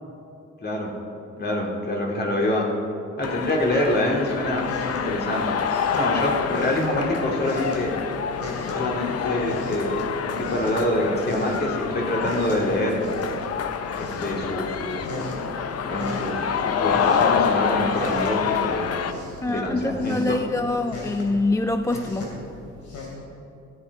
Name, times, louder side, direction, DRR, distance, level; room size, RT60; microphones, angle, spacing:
voice 1, 1.4-2.7 3.2-5.5 5.9-7.9 8.7-13.0 13.9-15.2 15.8-18.9 19.4-20.4, left 1 dB, 35° left, -1 dB, 2.7 m, -26 dB
sound 1, 3.2-19.1, left 7 dB, 55° left, 0.7 m, -27 dB
sound 2, 4.0-23.1, left 1 dB, 70° left, 3.1 m, -38 dB
voice 2, 19.4-22.3, left 2 dB, 10° left, 8 dB, 0.3 m, -25 dB
15.5 x 7.7 x 4.8 m, 2.6 s
cardioid pair, 90°, 30 cm